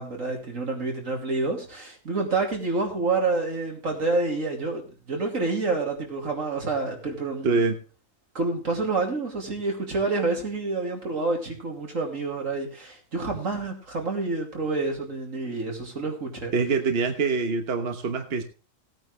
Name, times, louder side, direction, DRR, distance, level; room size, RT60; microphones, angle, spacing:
voice 1, 0.0-7.6 8.3-16.5, right 3 dB, 75° right, 3.1 m, -28 dB
voice 2, 7.4-7.7 16.5-18.4, right 4 dB, 50° right, 1.3 m, -24 dB
17.5 x 9.0 x 3.2 m
omnidirectional pair, 1.4 m